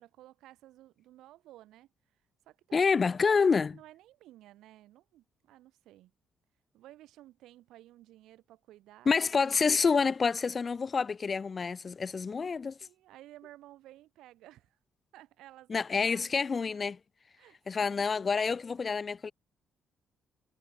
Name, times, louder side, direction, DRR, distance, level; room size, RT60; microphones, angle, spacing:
voice 1, 0.0-1.9 2.5-2.9 3.2-6.1 6.7-9.5 10.3-10.4 12.8-14.8 15.1-16.4 17.4-18.0, right 15 dB, 90° right, 5.6 m, -55 dB
voice 2, 2.7-3.7 9.1-12.8 15.7-17.0 17.7-19.3, left 5 dB, 35° left, 1.2 m, -28 dB
cardioid pair, 90°, 0 cm